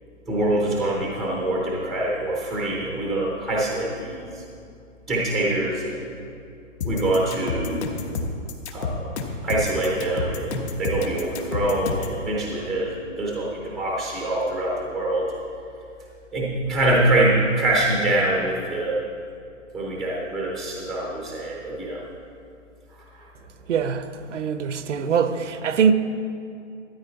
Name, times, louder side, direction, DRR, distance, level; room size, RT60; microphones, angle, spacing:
voice 1, 0.3-4.4 5.1-6.0 6.8-7.9 8.7-9.1 9.4-15.4 16.3-19.0 19.7-22.0 23.1-23.3, right 1 dB, ahead, 0.6 m, -24 dB
sound 1, 6.8-12.2, left 4 dB, 55° left, 1.3 m, -29 dB
voice 2, 23.7-25.9, right 6 dB, 65° right, 0.8 m, -23 dB
13.0 x 9.3 x 4.0 m
hypercardioid pair, 150°, 39 cm